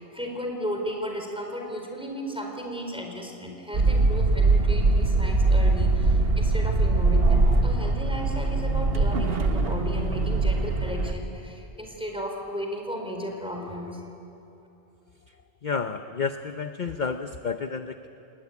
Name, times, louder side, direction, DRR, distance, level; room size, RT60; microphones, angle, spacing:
voice 1, 0.0-14.0, equal, 5° right, 1 dB, 4.4 m, -35 dB
sound 1, 3.7-11.1, right 2 dB, 60° right, 1.7 m, -22 dB
voice 2, 15.6-18.1, left 5 dB, 45° left, 7 dB, 0.9 m, -30 dB
29.0 x 20.5 x 9.6 m, 2.9 s
omnidirectional pair, 1.2 m